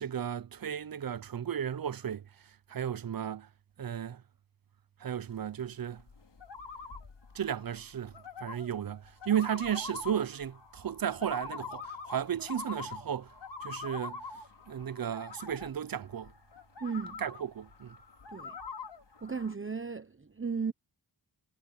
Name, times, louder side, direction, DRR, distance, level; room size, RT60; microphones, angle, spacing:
voice 1, 0.0-2.3 2.7-3.5 3.8-4.2 5.0-6.0 7.3-8.1 8.4-13.3 13.6-14.2 14.7-16.3 17.2-18.0, right 9 dB, 50° right, 0.7 m, -34 dB
sound 1, 5.3-19.5, left 4 dB, 65° left, 4.0 m, -45 dB
voice 2, 16.8-17.2 18.3-18.6 19.2-20.7, right 5 dB, 25° right, 1.1 m, -35 dB
cardioid pair, 50°, 46 cm